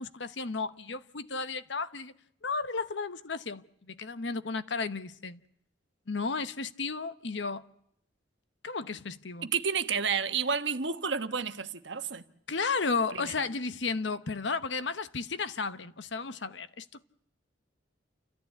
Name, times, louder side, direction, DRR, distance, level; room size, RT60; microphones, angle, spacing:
voice 1, 0.0-2.1 2.4-5.4 6.1-7.6 8.6-9.5 12.5-17.0, left 4 dB, 65° left, 1.0 m, -33 dB
voice 2, 9.4-12.2 13.1-13.3, right 6 dB, 65° right, 1.3 m, -30 dB
29.0 x 14.5 x 9.5 m
head